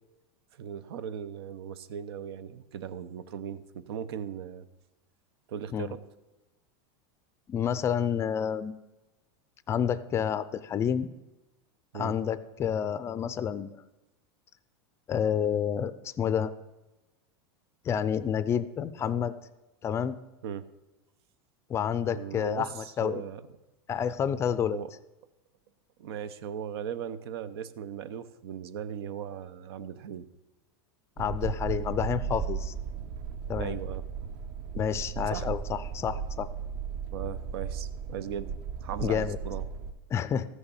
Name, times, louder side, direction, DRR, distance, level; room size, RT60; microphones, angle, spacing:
voice 1, 0.5-4.7 5.5-6.0 11.9-12.1 20.4-20.7 22.1-23.4 24.7-24.9 26.0-30.3 33.6-34.0 35.3-35.5 37.1-38.5 38.8-39.6, right 8 dB, 80° right, 15 dB, 0.8 m, -38 dB
voice 2, 7.5-8.7 9.7-11.1 11.9-13.8 15.1-16.5 17.9-19.3 19.8-20.2 21.7-23.2 23.9-24.8 31.2-32.7 33.5-33.8 34.7-36.5 39.0-39.4 40.1-40.5, left 8 dB, 20° left, 14 dB, 0.4 m, -29 dB
sound 1, 31.2-39.9, right 7 dB, 50° right, 0.9 m, -35 dB
14.0 x 6.4 x 7.2 m, 1.0 s
supercardioid pair, 155°, 13 cm